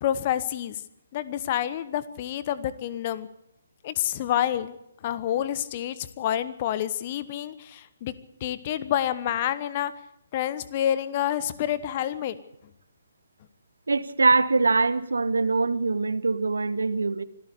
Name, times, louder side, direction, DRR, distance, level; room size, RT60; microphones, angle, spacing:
voice 1, 0.0-0.8 1.1-3.3 3.8-4.8 5.0-8.1 8.4-9.9 10.3-12.4, left 11 dB, 30° left, 1.1 m, -28 dB
voice 2, 13.9-17.2, right 3 dB, 65° right, 1.2 m, -23 dB
25.0 x 13.5 x 8.4 m
figure-of-eight pair, 135°, 0 cm